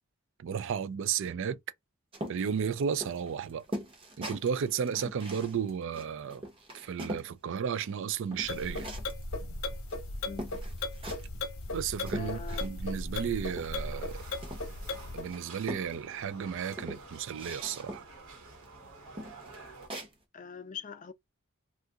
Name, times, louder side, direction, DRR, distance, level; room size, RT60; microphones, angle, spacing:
voice 1, 0.4-1.6 2.3-3.6 4.2-6.4 6.7-8.9 11.7-14.2 15.1-18.0, right 7 dB, 65° right, 0.4 m, -33 dB
sound 1, 2.1-7.3 7.7-9.2 9.9-10.0 10.4-11.4 11.7-12.9 13.2-14.9 15.3-16.3 16.7-18.2 18.6-18.8 19.1-20.1, equal, 25° right, 0.9 m, -42 dB
sound 2, 8.4-15.3, left 2 dB, 75° left, 0.8 m, -37 dB
voice 2, 10.3-10.6 12.1-12.6 20.3-21.1, left 6 dB, 40° left, 0.5 m, -42 dB
sound 3, 13.7-19.9, right 3 dB, 85° right, 1.3 m, -50 dB
2.7 x 2.4 x 3.6 m
head